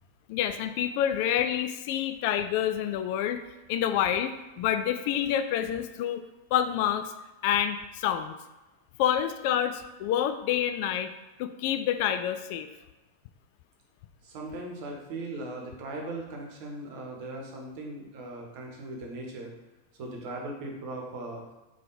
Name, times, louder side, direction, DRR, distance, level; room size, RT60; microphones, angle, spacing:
voice 1, 0.3-3.4 3.7-6.2 6.5-7.1 7.4-8.4 9.0-11.1 11.4-12.7, left 10 dB, 45° left, 9 dB, 0.3 m, -28 dB
voice 2, 14.2-19.5 20.0-21.4, right 2 dB, 45° right, 0 dB, 1.1 m, -38 dB
3.7 x 3.4 x 3.9 m, 1.1 s
figure-of-eight pair, 90°, 0 cm